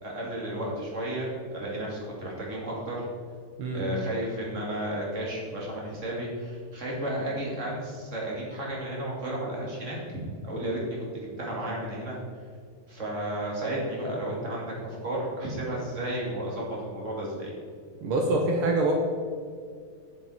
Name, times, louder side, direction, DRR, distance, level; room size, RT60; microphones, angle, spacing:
voice 1, 0.0-3.0 3.7-10.2 10.4-12.2 12.9-17.5, right 1 dB, 25° right, -3 dB, 2.3 m, -33 dB
voice 2, 18.0-18.9, right 2 dB, 80° right, 1 dB, 1.2 m, -25 dB
10.5 x 7.7 x 4.3 m, 2.1 s
omnidirectional pair, 4.0 m